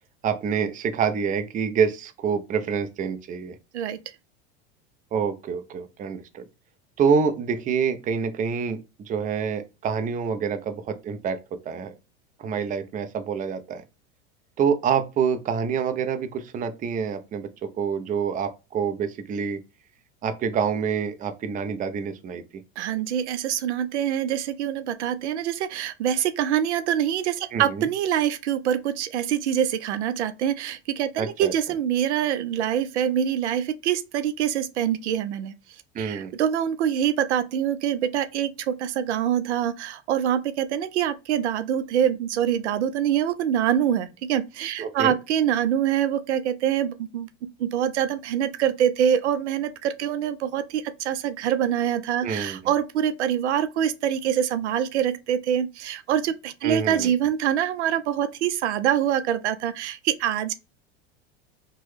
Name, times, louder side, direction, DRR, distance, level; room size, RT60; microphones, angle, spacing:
voice 1, 0.2-3.6 5.1-6.4 7.0-11.9 12.4-13.8 14.6-19.6 20.2-22.4 27.5-27.9 31.2-31.5 35.9-36.3 44.8-45.1 52.2-52.6 56.6-57.1, right 6 dB, 25° right, 0.5 m, -27 dB
voice 2, 22.8-35.5 36.0-47.3 47.6-60.5, right 10 dB, 85° right, 0.5 m, -25 dB
3.0 x 2.2 x 3.1 m
hypercardioid pair, 90°, 33 cm